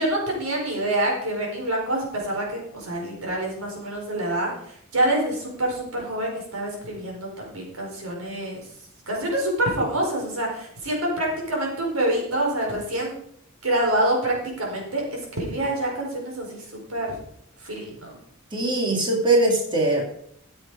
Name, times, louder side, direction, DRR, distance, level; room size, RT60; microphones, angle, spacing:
voice 1, 0.0-8.6 9.1-13.2 13.6-17.2 17.6-18.1, right 1 dB, 90° right, -1 dB, 4.8 m, -26 dB
voice 2, 18.5-20.0, right 2 dB, 25° right, 0 dB, 2.5 m, -21 dB
14.0 x 7.6 x 5.0 m, 0.69 s
head